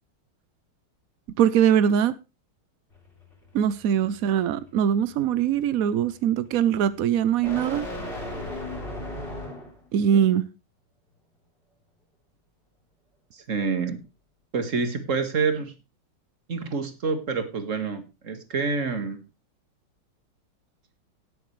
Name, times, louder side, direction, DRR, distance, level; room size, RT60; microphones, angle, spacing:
voice 1, 1.4-2.1 3.5-7.9 9.9-10.4, right 9 dB, 80° right, 0.7 m, -22 dB
sound 1, 2.9-9.9, left 1 dB, 25° left, 3.9 m, -38 dB
voice 2, 13.3-14.0 14.5-15.7 16.5-19.2, right 5 dB, 40° right, 1.9 m, -27 dB
18.0 x 7.8 x 3.2 m
omnidirectional pair, 2.3 m